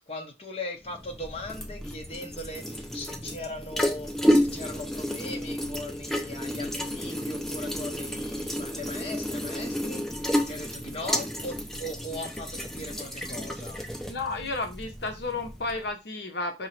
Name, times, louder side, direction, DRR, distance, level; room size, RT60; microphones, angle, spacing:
voice 1, 0.1-13.8, left 1 dB, 30° left, 0.8 m, -39 dB
sound 1, 0.9-15.9, equal, ahead, 0.4 m, -31 dB
voice 2, 14.1-16.7, left 3 dB, 60° left, 0.8 m, -32 dB
5.4 x 2.8 x 3.1 m
head